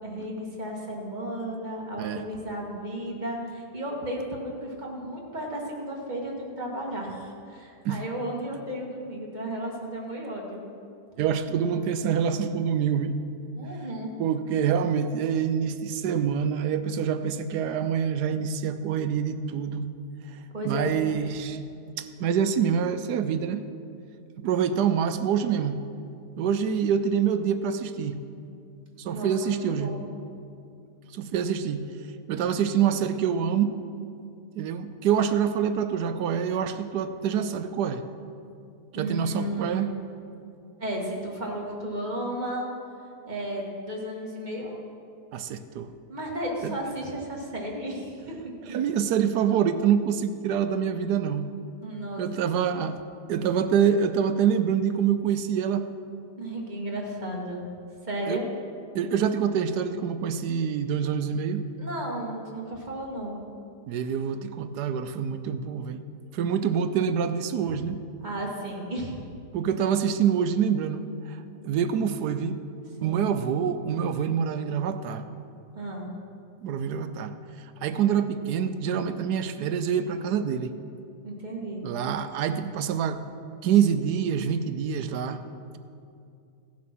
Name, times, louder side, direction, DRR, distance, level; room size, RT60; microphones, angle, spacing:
voice 1, 0.0-10.6 13.6-14.1 20.5-20.9 29.1-30.0 38.9-39.9 40.8-42.7 43.2-44.8 46.1-48.8 51.8-52.4 56.4-57.6 58.0-58.5 61.8-63.4 67.6-67.8 68.2-69.2 73.0-73.2 75.7-76.1 81.2-81.8, right 1 dB, 25° right, -2 dB, 1.9 m, -34 dB
voice 2, 11.2-13.2 13.7-13.8 14.2-19.9 20.3-21.6 22.0-23.7 24.4-25.8 26.4-28.2 29.0-29.9 31.1-31.9 32.3-33.8 34.5-38.0 38.9-39.9 45.3-45.9 46.6-46.7 48.7-51.5 52.2-53.0 53.3-55.8 58.3-58.4 58.9-61.6 63.9-66.0 66.3-68.0 69.5-71.4 71.6-72.6 73.0-75.2 76.6-77.3 77.8-80.7 81.8-83.2 83.6-85.4, right 7 dB, 75° right, 10 dB, 1.1 m, -26 dB
16.0 x 7.3 x 6.0 m, 2.5 s
omnidirectional pair, 1.8 m